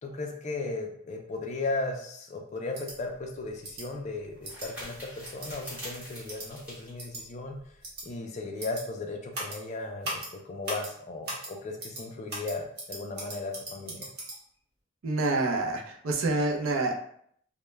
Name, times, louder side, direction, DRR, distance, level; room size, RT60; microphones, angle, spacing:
voice 1, 0.0-7.6 8.0-14.1, left 3 dB, 35° left, 2 dB, 0.3 m, -36 dB
sound 1, 2.7-2.9 3.6-3.8 4.4-4.7 5.2-5.5 6.3-6.5 7.0-7.2 7.8-8.0 8.6-8.8 9.3-9.6 10.0-10.3 10.6-10.9 11.2-11.5 11.8-12.0 12.3-14.4, right 1 dB, 50° right, 0.8 m, -38 dB
sound 2, 3.0-8.1, equal, 10° right, 0.9 m, -46 dB
voice 2, 15.0-16.9, right 2 dB, 70° right, 1 dB, 0.4 m, -27 dB
2.2 x 2.0 x 3.1 m, 0.65 s
head